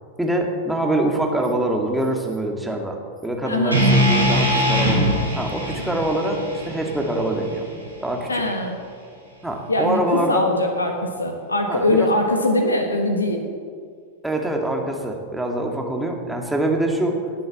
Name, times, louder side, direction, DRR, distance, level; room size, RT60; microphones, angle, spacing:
voice 1, 0.2-3.0 3.2-5.0 5.4-7.7 8.0-8.4 9.4-10.5 11.7-12.1 14.2-17.2, right 1 dB, 5° right, 1 dB, 2.3 m, -24 dB
voice 2, 3.4-3.8 8.3-8.8 9.7-13.5, left 1 dB, 80° left, 4 dB, 1.4 m, -22 dB
sound 1, 3.7-7.9, equal, 85° right, 4.5 m, -21 dB
18.0 x 7.8 x 7.2 m, 2.1 s
figure-of-eight pair, 90°, 0 cm